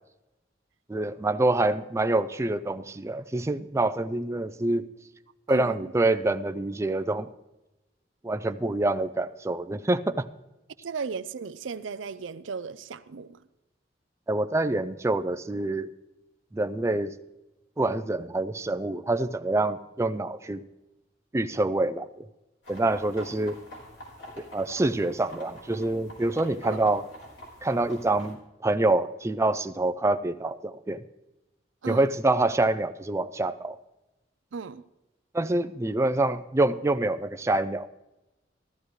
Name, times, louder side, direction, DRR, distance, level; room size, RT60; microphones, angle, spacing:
voice 1, 0.9-4.9 5.5-7.3 8.2-10.3 14.3-15.9 16.5-17.1 17.8-20.6 21.3-22.3 22.7-23.6 24.4-27.1 27.6-31.0 31.9-33.8 35.3-37.9, right 2 dB, 15° right, 0.4 m, -26 dB
voice 2, 5.5-5.9 10.8-13.4 26.6-26.8 31.8-32.1 34.5-34.8, right 5 dB, 90° right, 0.5 m, -36 dB
sound 1, 22.6-28.3, equal, 75° left, 4.1 m, -46 dB
14.0 x 13.5 x 3.2 m
head